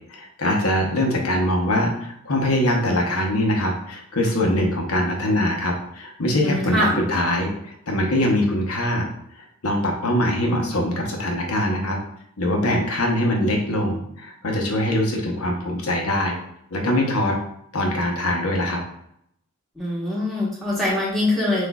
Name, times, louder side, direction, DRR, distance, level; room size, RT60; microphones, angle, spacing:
voice 1, 0.1-9.1 9.3-12.0 12.4-16.4 16.7-17.4 17.7-18.8, left 1 dB, 80° left, 1 dB, 0.9 m, -23 dB
voice 2, 6.4-7.0 19.8-21.7, left 1 dB, ahead, -7 dB, 1.1 m, -23 dB
6.2 x 2.5 x 2.3 m, 0.72 s
head